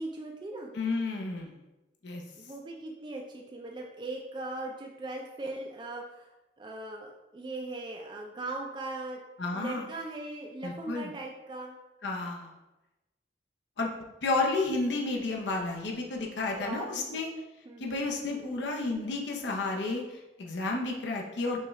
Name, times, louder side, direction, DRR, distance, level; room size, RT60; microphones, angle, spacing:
voice 1, 0.0-0.7 2.4-6.3 6.6-9.2 9.5-11.8 16.6-17.3 17.7-18.5, right 2 dB, 25° right, 0 dB, 0.3 m, -39 dB
voice 2, 0.7-1.5 2.0-2.2 9.4-9.9 10.6-11.1 12.0-12.5 13.8-13.9 14.2-17.3 17.8-21.6, left 3 dB, 75° left, 0 dB, 0.6 m, -31 dB
5.4 x 2.3 x 3.1 m, 1.0 s
head